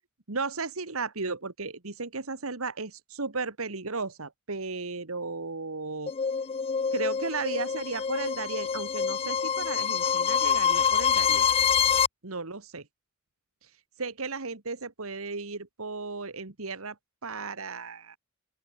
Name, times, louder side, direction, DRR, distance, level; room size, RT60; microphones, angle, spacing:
voice 1, 0.3-6.1 6.9-11.5 12.2-12.9 13.6-13.7 14.0-17.0 17.2-18.2, right 4 dB, 75° right, 1.8 m, -35 dB
sound 1, 6.1-12.1, left 7 dB, 25° left, 0.4 m, -26 dB
open air
head